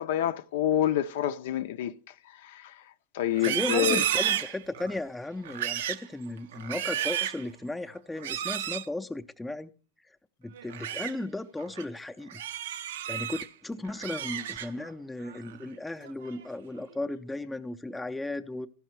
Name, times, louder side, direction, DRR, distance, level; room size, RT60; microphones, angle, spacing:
voice 1, 0.0-1.9 2.4-2.7 3.1-4.0, left 11 dB, 70° left, 0.5 m, -27 dB
Livestock farm animals working animals, 3.3-5.0 5.4-6.1 6.5-7.4 8.2-8.9 10.5-11.1 11.6-11.8 12.3-13.5 13.8-14.9 15.3-15.6 16.0-16.5, right 11 dB, 75° right, 0.5 m, -32 dB
voice 2, 3.4-9.7 10.4-12.4 13.1-18.7, left 2 dB, 5° left, 0.5 m, -35 dB
14.0 x 5.6 x 4.6 m
hypercardioid pair, 125°, 0 cm